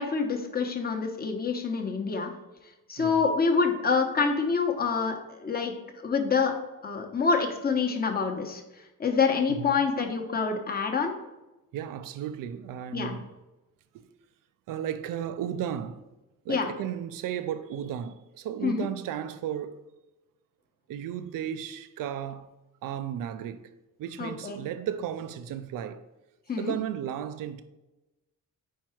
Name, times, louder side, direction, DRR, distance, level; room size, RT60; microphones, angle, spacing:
voice 1, 0.0-2.3 2.9-5.7 6.0-6.5 6.8-8.6 9.0-11.1 12.9-13.1 16.5-16.7 18.6-18.9 24.2-24.6 26.5-26.7, left 5 dB, 30° left, 0.9 m, -26 dB
voice 2, 11.7-13.3 13.9-14.1 14.7-16.0 16.4-19.8 20.9-22.5 22.8-23.7 24.0-26.0 26.6-27.6, right 9 dB, 85° right, 0.5 m, -34 dB
4.6 x 4.6 x 4.4 m
cardioid pair, 100°, 32 cm